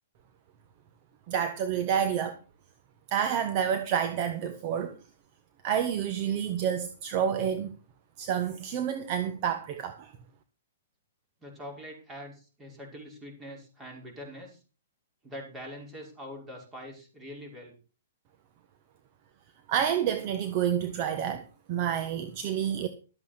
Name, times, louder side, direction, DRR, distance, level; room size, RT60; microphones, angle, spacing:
voice 1, 1.3-2.4 3.1-5.0 5.6-7.8 8.2-10.1 19.7-22.9, right 8 dB, 35° right, 1.4 m, -29 dB
voice 2, 11.4-14.6 15.2-17.7, equal, 10° right, 5.7 m, -44 dB
13.0 x 8.4 x 6.2 m
hypercardioid pair, 155°, 0 cm